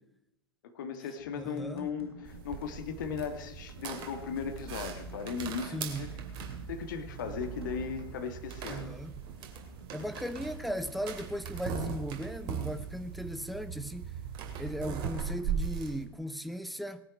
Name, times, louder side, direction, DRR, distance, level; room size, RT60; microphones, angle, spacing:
voice 1, 0.6-6.1 6.7-8.9, left 6 dB, 55° left, 2.1 m, -37 dB
sound 1, 1.2-12.0, right 5 dB, 85° right, 2.3 m, -52 dB
voice 2, 1.3-1.9 5.7-6.1 8.7-9.1 9.9-14.0 14.6-17.0, equal, ahead, 0.8 m, -37 dB
sound 2, 2.2-16.0, right 7 dB, 35° right, 2.5 m, -39 dB
19.0 x 9.8 x 4.6 m
figure-of-eight pair, 95°, 13 cm